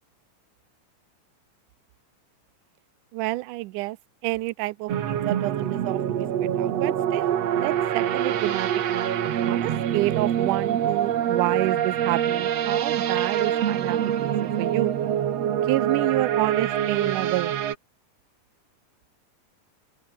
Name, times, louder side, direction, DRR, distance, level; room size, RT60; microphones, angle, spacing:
voice 1, 3.1-4.0 4.2-9.1 9.5-14.9 15.4-17.5, right 19 dB, 80° right, 2.1 m, -29 dB
sound 1, 4.9-17.7, right 10 dB, 55° right, 2.4 m, -25 dB
open air
omnidirectional pair, 3.7 m